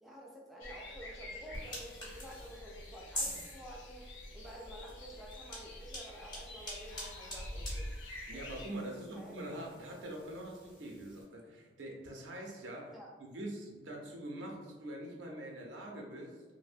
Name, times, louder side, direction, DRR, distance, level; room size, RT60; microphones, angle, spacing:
voice 1, 0.0-7.9 8.3-8.4 8.9-9.4 12.9-13.1, equal, ahead, -3 dB, 0.3 m, -50 dB
sound 1, 0.6-8.7, left 1 dB, 90° left, 0.5 m, -47 dB
Hair Stretcher, 1.5-11.2, left 1 dB, 25° left, 0.7 m, -47 dB
voice 2, 8.3-12.9 13.2-16.4, right 1 dB, 90° right, 0 dB, 0.6 m, -44 dB
2.7 x 2.1 x 2.5 m, 1.3 s
head